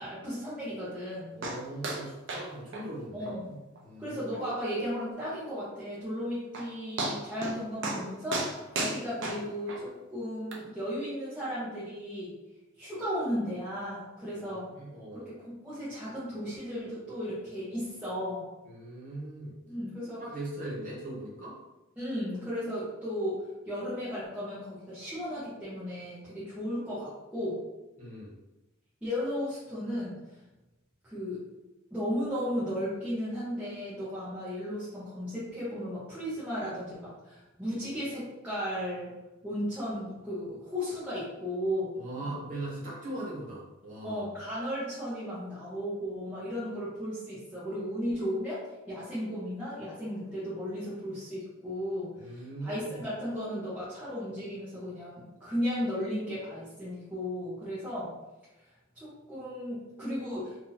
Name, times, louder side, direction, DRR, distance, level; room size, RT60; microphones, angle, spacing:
voice 1, 0.0-1.3 3.1-3.5 4.0-12.3 12.8-14.7 15.1-18.5 19.7-20.2 22.0-27.6 29.0-30.2 31.0-31.4 31.9-39.1 39.4-41.9 42.2-42.3 44.0-48.6 48.9-58.1 58.9-60.6, equal, 5° right, -12 dB, 1.0 m, -35 dB
voice 2, 1.3-4.2 14.3-15.3 18.6-19.5 20.2-21.5 28.0-28.3 41.9-44.2 52.2-53.0, right 1 dB, 40° right, -5 dB, 1.3 m, -40 dB
sound 1, 1.4-1.6 1.8-2.0 2.3-2.5 2.7-2.8 3.3-3.4 3.8-3.9 4.3-4.4 6.1-6.2 6.5-6.7 7.0-7.6 7.8-8.0 8.3-9.8 10.5-10.6, right 2 dB, 65° right, 0.7 m, -33 dB
2.9 x 2.7 x 4.0 m, 1.0 s
head